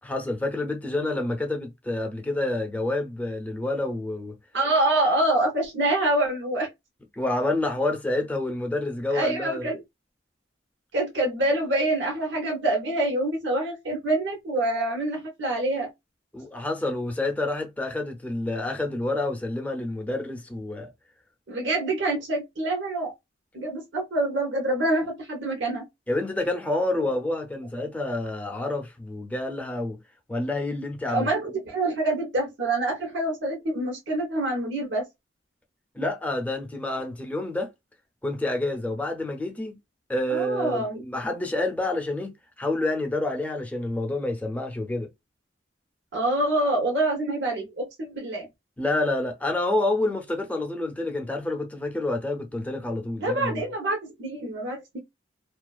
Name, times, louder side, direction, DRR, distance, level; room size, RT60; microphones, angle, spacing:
voice 1, 0.0-4.4 7.1-9.7 16.3-20.9 26.1-30.0 30.3-31.3 35.9-37.7 38.2-39.8 40.1-45.1 48.8-53.6, left 2 dB, 10° left, 0.5 m, -28 dB
voice 2, 4.5-6.7 9.1-9.8 10.9-15.9 21.5-23.1 23.5-25.8 27.0-27.1 31.1-35.1 40.3-41.0 46.1-48.5 53.2-55.0, right 2 dB, 75° right, 0.8 m, -26 dB
2.4 x 2.3 x 2.3 m
head